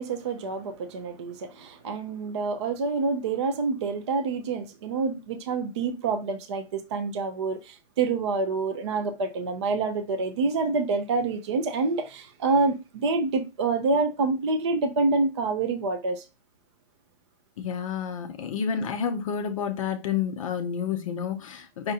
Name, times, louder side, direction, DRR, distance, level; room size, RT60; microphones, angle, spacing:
voice 1, 0.0-16.3, right 3 dB, 30° right, 0.4 m, -27 dB
voice 2, 17.6-21.9, left 7 dB, 30° left, 0.5 m, -29 dB
5.4 x 2.5 x 4.0 m
hypercardioid pair, 160°, 33 cm